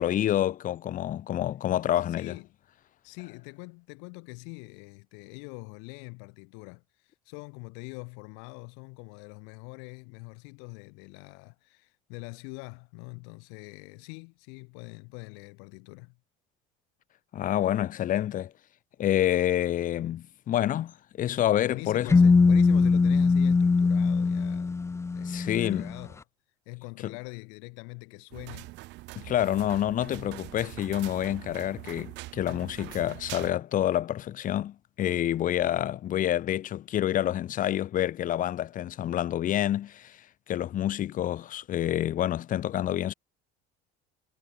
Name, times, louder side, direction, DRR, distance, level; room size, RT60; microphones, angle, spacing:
voice 1, 0.0-2.3 17.3-18.5 19.0-22.1 25.3-25.8 27.0-27.1 29.2-40.2 40.5-43.1, left 12 dB, 45° left, 1.2 m, -28 dB
voice 2, 2.0-2.5 3.0-16.2 21.6-24.8 25.1-26.2 26.6-28.7, left 40 dB or more, 85° left, 4.8 m, -43 dB
sound 1, 22.1-25.9, left 4 dB, 15° left, 0.6 m, -22 dB
sound 2, 28.3-33.5, right 21 dB, 70° right, 2.8 m, -43 dB
cardioid pair, 120°, 19 cm